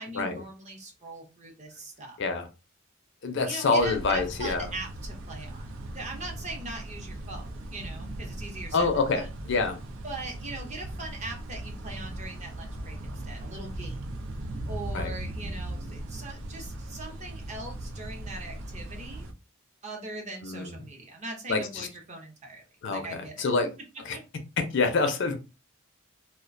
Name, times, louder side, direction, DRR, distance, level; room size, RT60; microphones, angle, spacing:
voice 1, 0.0-2.2 3.5-5.7 5.9-8.9 9.2-9.3 10.0-14.0 14.7-19.3 19.8-22.6 22.9-23.5 24.1-24.2, right 2 dB, 35° right, 0.6 m, -41 dB
voice 2, 3.2-4.7 8.7-9.8 14.9-15.1 20.4-20.8 21.5-21.9 22.8-23.7 24.0-24.2 24.6-25.3, left 3 dB, 60° left, 0.5 m, -27 dB
sound 1, 3.8-19.3, right 1 dB, 80° right, 0.4 m, -38 dB
2.3 x 2.1 x 2.5 m
head